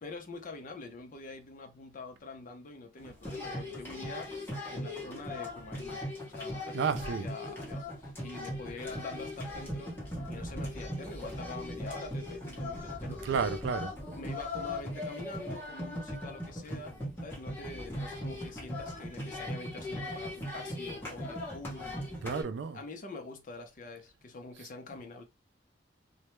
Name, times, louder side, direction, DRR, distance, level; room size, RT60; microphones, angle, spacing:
voice 1, 0.0-4.3 4.7-10.0 10.3-13.3 14.2-17.0 17.2-22.1 22.7-25.2, left 3 dB, 45° left, 0.5 m, -45 dB
sound 1, 3.0-22.4, left 1 dB, 10° left, 0.8 m, -39 dB
voice 2, 6.7-7.3 13.2-14.0 22.2-22.8, right 6 dB, 65° right, 0.3 m, -31 dB
2.2 x 2.1 x 2.9 m
head